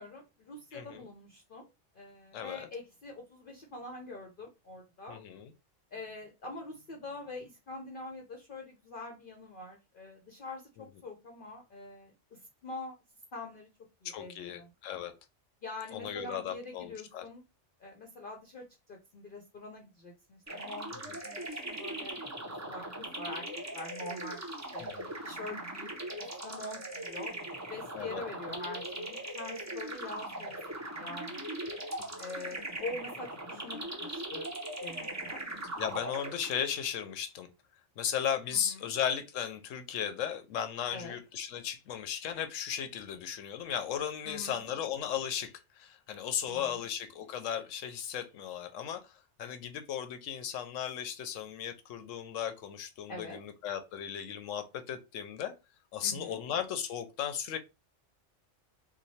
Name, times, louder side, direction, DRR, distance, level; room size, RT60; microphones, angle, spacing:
voice 1, 0.0-1.7 2.0-5.2 5.9-12.9 13.3-13.7 14.0-14.7 15.6-17.4 17.8-20.9 21.2-23.5 23.7-24.4 24.7-24.9 25.2-25.9 26.2-27.3 27.7-30.6 30.9-31.4 32.2-34.5 34.8-35.4 38.5-38.9 40.9-41.2 44.2-44.7 46.5-46.8 53.1-53.4 56.0-56.4, left 2 dB, 50° left, 0.7 m, -44 dB
voice 2, 0.7-1.1 2.3-2.7 5.1-5.5 14.0-15.1 15.9-17.2 20.9-21.2 24.8-25.1 27.9-28.2 35.8-37.5 38.0-55.5 55.9-57.6, left 9 dB, 85° left, 1.0 m, -36 dB
sound 1, 20.5-36.8, right 1 dB, 20° right, 0.5 m, -40 dB
3.0 x 2.2 x 4.1 m
omnidirectional pair, 1.3 m